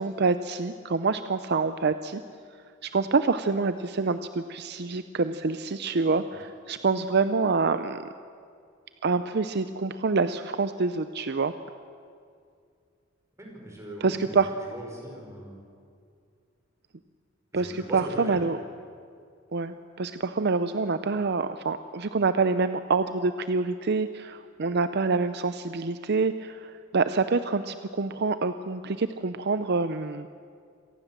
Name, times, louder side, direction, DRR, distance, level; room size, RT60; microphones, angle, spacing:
voice 1, 0.0-2.2 2.8-8.0 9.0-11.5 14.0-14.5 17.5-18.6 19.5-30.3, right 4 dB, 55° right, 11 dB, 0.6 m, -26 dB
voice 2, 13.4-15.5 17.5-18.4, right 1 dB, 15° right, 0 dB, 5.5 m, -40 dB
26.5 x 18.0 x 7.5 m, 2.3 s
head